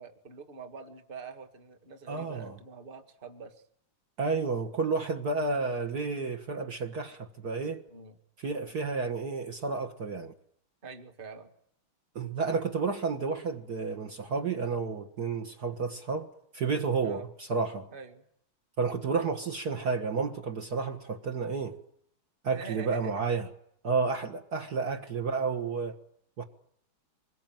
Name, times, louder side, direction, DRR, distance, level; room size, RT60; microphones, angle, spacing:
voice 1, 0.0-3.6 7.9-8.2 10.8-11.5 17.0-17.3 17.9-18.2 22.5-23.4 24.8-24.9, right 5 dB, 25° right, 8 dB, 1.9 m, -45 dB
voice 2, 2.1-2.5 4.2-7.8 8.4-10.3 12.2-16.3 16.5-17.9 18.8-21.8 22.4-23.5 23.8-26.0 26.4-26.5, right 4 dB, 50° right, 2 dB, 2.0 m, -31 dB
25.5 x 21.0 x 9.1 m, 0.70 s
omnidirectional pair, 2.4 m